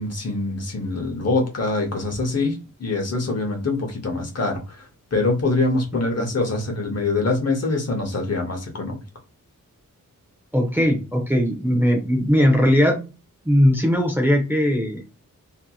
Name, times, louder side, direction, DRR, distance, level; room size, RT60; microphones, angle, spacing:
voice 1, 0.0-4.8 5.1-9.0, left 3 dB, 50° left, 0.8 m, -24 dB
voice 2, 10.5-13.0 13.4-15.0, equal, 5° right, 0.5 m, -19 dB
2.8 x 2.5 x 2.3 m
wide cardioid pair, 115°, 33 cm